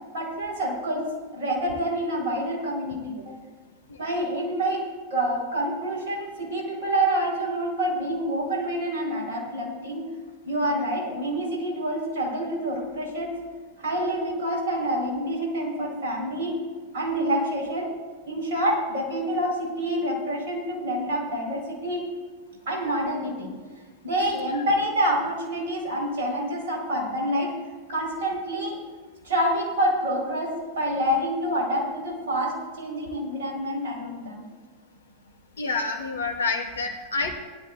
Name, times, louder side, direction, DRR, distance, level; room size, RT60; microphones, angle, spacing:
voice 1, 0.1-1.1 1.3-3.2 4.0-10.1 10.4-13.3 13.8-16.6 16.9-17.9 18.3-22.0 22.7-23.5 24.0-27.5 27.9-28.8 29.2-34.4, right 1 dB, 60° right, -1 dB, 4.4 m, -27 dB
voice 2, 35.6-37.3, left 3 dB, 70° left, 3 dB, 1.5 m, -28 dB
19.5 x 11.5 x 2.5 m, 1.5 s
figure-of-eight pair, 90°, 0 cm